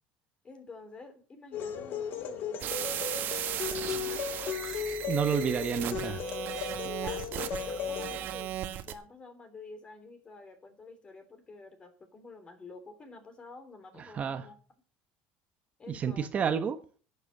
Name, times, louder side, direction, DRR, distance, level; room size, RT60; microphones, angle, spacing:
voice 1, 0.4-4.4 5.4-5.6 6.8-14.6 15.8-16.3, left 3 dB, 25° left, 3.2 m, -49 dB
sound 1, 1.5-8.2, left 8 dB, 55° left, 1.5 m, -36 dB
sound 2, 2.6-8.9, right 12 dB, 55° right, 1.6 m, -36 dB
Chewing mastication, 3.4-8.7, right 2 dB, 15° right, 2.2 m, -51 dB
voice 2, 5.1-6.2 14.0-14.5 15.9-16.8, right 7 dB, 35° right, 1.0 m, -30 dB
11.0 x 8.2 x 6.6 m
cardioid pair, 130°, 4 cm